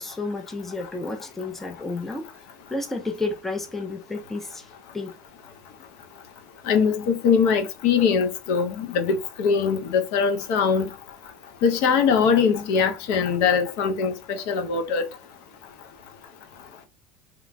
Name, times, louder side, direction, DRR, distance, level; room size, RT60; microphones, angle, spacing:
voice 1, 0.0-2.4 2.7-4.7 4.9-5.2, left 3 dB, 5° left, 0.4 m, -31 dB
voice 2, 6.7-10.9 11.6-15.1, left 6 dB, 65° left, 0.6 m, -22 dB
3.0 x 2.2 x 2.4 m
cardioid pair, 170°, 4 cm